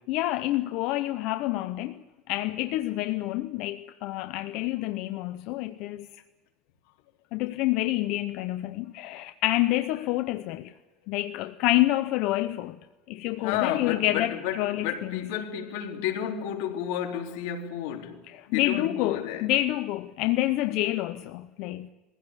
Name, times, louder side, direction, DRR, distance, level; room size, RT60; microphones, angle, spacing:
voice 1, 0.1-2.0 2.3-6.1 7.3-10.7 11.1-12.8 13.1-15.3 18.3-21.9, left 16 dB, 55° left, 0.7 m, -28 dB
voice 2, 13.4-18.2 18.5-19.5, left 9 dB, 85° left, 3.8 m, -31 dB
21.5 x 16.0 x 9.8 m
cardioid pair, 170°, 0 cm